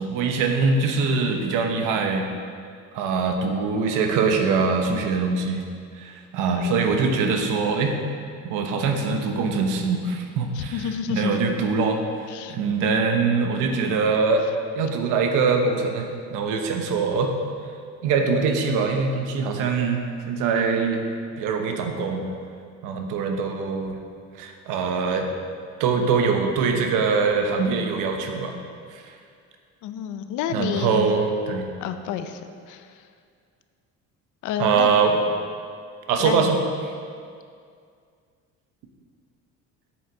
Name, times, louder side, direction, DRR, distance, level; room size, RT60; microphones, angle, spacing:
voice 1, 0.0-2.3 2.9-5.6 6.0-8.0 8.4-10.8 11.1-12.0 12.5-14.4 14.7-17.3 18.0-21.0 21.4-22.3 22.8-24.0 24.4-25.3 25.8-28.6 28.9-29.0 30.5-31.7 34.6-35.2 36.1-36.6, right 4 dB, 85° right, 4 dB, 1.0 m, -23 dB
voice 2, 6.6-6.9 10.5-11.4 12.3-12.6 29.8-31.1 31.8-32.4 32.7-33.0 34.4-34.9 36.2-36.6, left 8 dB, 70° left, 9 dB, 0.6 m, -29 dB
7.8 x 7.6 x 4.0 m, 2.2 s
cardioid pair, 145°, 31 cm